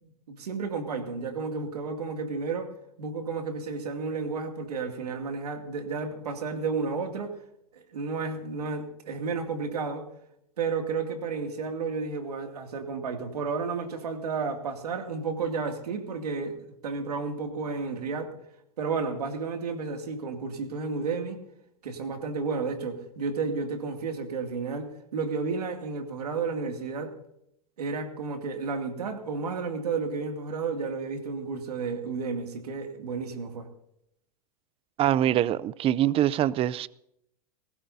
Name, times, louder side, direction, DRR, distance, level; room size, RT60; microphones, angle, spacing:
voice 1, 0.0-2.7 3.0-7.3 7.7-10.1 10.6-18.3 18.8-21.4 21.8-27.1 27.8-33.7, right 4 dB, 90° right, 2.5 m, -32 dB
voice 2, 35.0-36.9, right 12 dB, 30° right, 0.6 m, -24 dB
20.5 x 18.0 x 2.8 m
hypercardioid pair, 115°, 20 cm